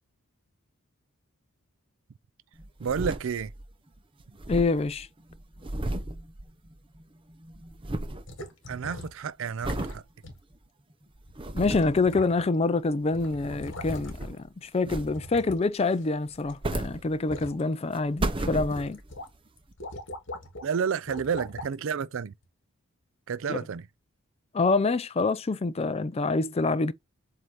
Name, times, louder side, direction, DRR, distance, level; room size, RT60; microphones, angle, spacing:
sound 1, 2.6-3.7 4.0-4.1 4.2-7.0 7.3-8.3 8.7-9.1 9.6-10.0 10.5-10.6 11.2-12.0 13.0-14.5 14.9-15.4 16.3-17.5 17.9-19.1 19.7-19.8, right 1 dB, 25° right, 0.7 m, -34 dB
voice 1, 2.8-3.5 8.7-10.0 20.6-22.3 23.3-23.9, right 6 dB, 60° right, 0.4 m, -30 dB
voice 2, 4.5-5.1 11.5-19.0 23.5-23.6 24.5-26.9, left 3 dB, 25° left, 0.4 m, -26 dB
sound 2, 8.3-9.2 9.6-10.0 10.2-10.4 11.3-11.4 11.7-12.7 12.9-14.4 15.0-16.5 16.8-17.6 18.1-18.3 18.7-19.3 19.6-20.7 21.1-21.7 22.4-22.5, left 1 dB, 55° left, 1.7 m, -41 dB
7.7 x 2.7 x 4.8 m
head